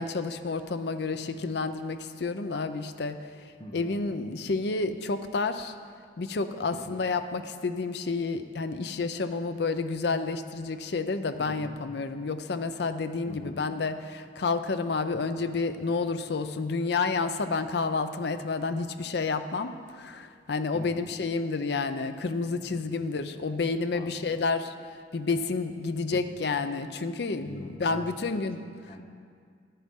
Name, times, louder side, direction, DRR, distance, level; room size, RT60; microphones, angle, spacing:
voice 1, 0.0-3.2 3.7-5.7 6.2-24.7 25.1-28.6, left 4 dB, 60° left, 10 dB, 0.5 m, -30 dB
voice 2, 3.6-4.0 6.7-7.1 11.4-11.8 13.2-13.6 20.7-21.1 22.7-23.0 23.9-24.4 26.1-26.4 27.4-29.1, left 1 dB, 30° left, 3 dB, 0.8 m, -44 dB
11.5 x 10.0 x 3.7 m, 2.1 s
head